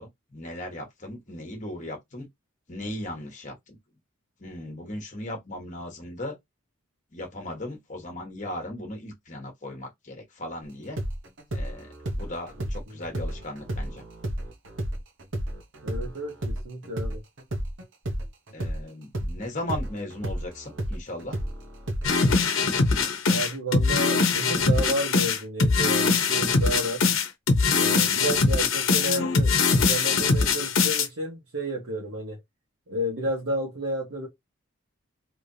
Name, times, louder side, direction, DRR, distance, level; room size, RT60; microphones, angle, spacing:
voice 1, 0.0-2.3 2.7-3.8 4.4-6.4 7.1-11.0 11.5-14.0 18.5-21.4, left 1 dB, 35° left, 1.3 m, -37 dB
sound 1, 11.0-18.8 19.1-22.4, right 1 dB, 65° right, 0.9 m, -32 dB
voice 2, 15.8-17.2 23.3-27.0 27.7-32.4 32.9-34.3, right 1 dB, 80° right, 1.3 m, -31 dB
sound 2, 22.0-31.1, left 4 dB, 80° left, 0.9 m, -22 dB
3.3 x 3.2 x 2.7 m
head